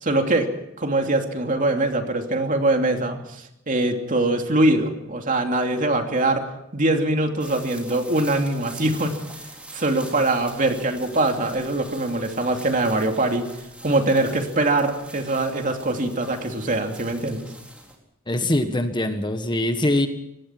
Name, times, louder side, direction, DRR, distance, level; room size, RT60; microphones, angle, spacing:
voice 1, 0.0-0.5 0.8-3.2 3.7-6.4 6.7-9.1 9.7-13.5 13.8-17.4, right 2 dB, 40° right, 4 dB, 2.9 m, -22 dB
sound 1, 7.4-18.0, right 1 dB, 5° right, 3.9 m, -44 dB
voice 2, 18.3-20.1, left 1 dB, 20° left, 8 dB, 1.5 m, -23 dB
25.0 x 19.5 x 6.1 m, 0.83 s
head